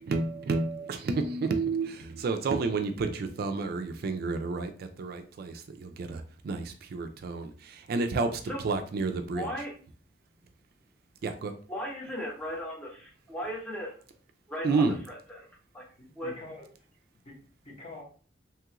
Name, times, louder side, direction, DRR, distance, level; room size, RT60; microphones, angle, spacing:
voice 1, 0.0-9.5 11.2-11.5 14.6-15.0, right 3 dB, 55° right, 0.3 m, -30 dB
voice 2, 9.3-9.7 11.7-13.9 14.5-15.5 15.7-15.8 16.2-16.3, equal, 5° left, 0.8 m, -36 dB
voice 3, 16.0-16.7 17.2-18.0, left 2 dB, 35° left, 1.0 m, -46 dB
3.0 x 2.4 x 2.8 m
head